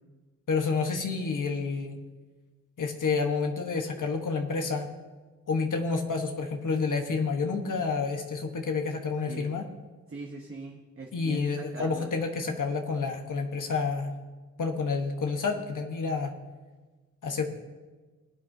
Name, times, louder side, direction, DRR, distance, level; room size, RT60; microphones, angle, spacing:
voice 1, 0.5-2.0 2.8-4.9 5.5-9.6 11.1-14.1 14.6-16.3 17.2-17.4, left 4 dB, 85° left, 3 dB, 1.2 m, -29 dB
voice 2, 10.1-12.1, right 3 dB, 45° right, 0 dB, 1.1 m, -42 dB
20.5 x 8.8 x 2.7 m, 1.3 s
wide cardioid pair, 110°, 30 cm